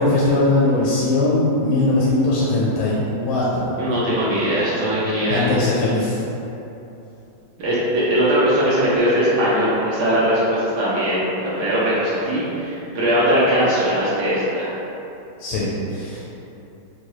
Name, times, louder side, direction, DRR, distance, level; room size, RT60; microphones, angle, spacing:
voice 1, 0.0-3.8 5.3-6.2 15.4-16.2, left 2 dB, 85° left, -7 dB, 1.4 m, -20 dB
voice 2, 3.8-5.5 7.6-14.7, equal, 65° right, -9 dB, 1.1 m, -20 dB
4.6 x 2.3 x 3.0 m, 3.0 s
omnidirectional pair, 2.2 m